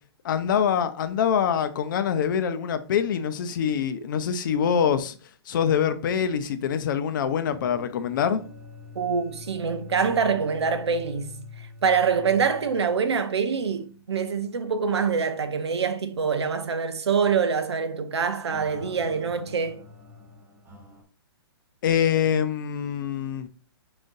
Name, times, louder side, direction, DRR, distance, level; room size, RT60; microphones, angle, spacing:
voice 1, 0.2-5.1 5.5-8.4 21.8-23.5, left 8 dB, 50° left, 0.6 m, -24 dB
sound 1, 7.5-14.0 14.3-14.4 15.0-15.1 18.5-21.0, left 4 dB, 15° right, 1.0 m, -45 dB
voice 2, 8.9-19.8, right 6 dB, 85° right, 0.7 m, -25 dB
5.0 x 3.8 x 2.6 m
hypercardioid pair, 145°, 14 cm